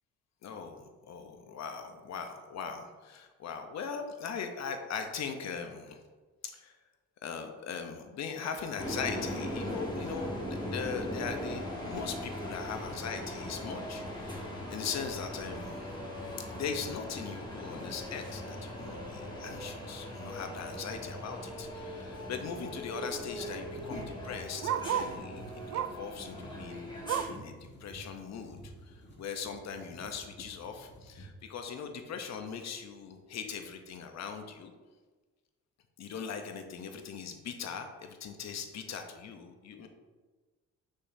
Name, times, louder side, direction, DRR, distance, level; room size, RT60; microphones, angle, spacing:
voice 1, 0.4-6.0 6.4-6.8 7.2-15.9 16.5-26.9 27.3-34.7 36.0-39.9, left 6 dB, 60° left, 6 dB, 0.8 m, -40 dB
sound 1, 8.8-27.3, left 1 dB, 15° left, 1.4 m, -40 dB
Bark, 21.5-21.7 22.1-22.2 22.4-25.2 25.7-26.1 26.5-27.5 27.9-28.0 28.4-28.5 29.2-29.3, right 9 dB, 60° right, 0.4 m, -36 dB
sound 2, 23.4-31.6 32.3-32.4 32.8-33.5 33.8-34.4, equal, 35° left, 1.6 m, -50 dB
6.7 x 5.6 x 2.7 m, 1.3 s
cardioid pair, 90°, 30 cm